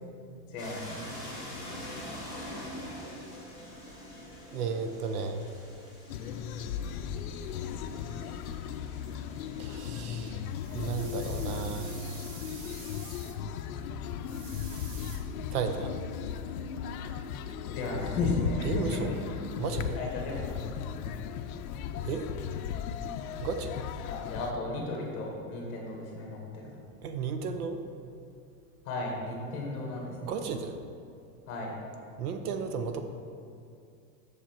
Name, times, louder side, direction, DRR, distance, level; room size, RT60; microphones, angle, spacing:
voice 1, 0.5-1.0 17.6-19.0 20.0-20.7 24.0-26.8 28.8-30.3 31.5-31.8, left 2 dB, 30° left, -1 dB, 1.5 m, -35 dB
sound 1, 0.6-13.1, left 1 dB, 10° right, 0.8 m, -46 dB
voice 2, 4.5-5.4 9.6-10.4 10.7-12.1 15.5-15.9 18.6-19.1 19.6-20.0 22.0-22.3 23.4-23.8 27.0-27.8 30.2-30.8 32.2-33.0, right 5 dB, 75° right, 7 dB, 0.9 m, -34 dB
sound 2, 6.1-24.5, left 8 dB, 65° left, 0.6 m, -36 dB
sound 3, 10.5-13.4 14.2-15.2, right 4 dB, 55° right, 1.3 m, -48 dB
7.4 x 6.8 x 4.4 m, 2.4 s
supercardioid pair, 180°, 46 cm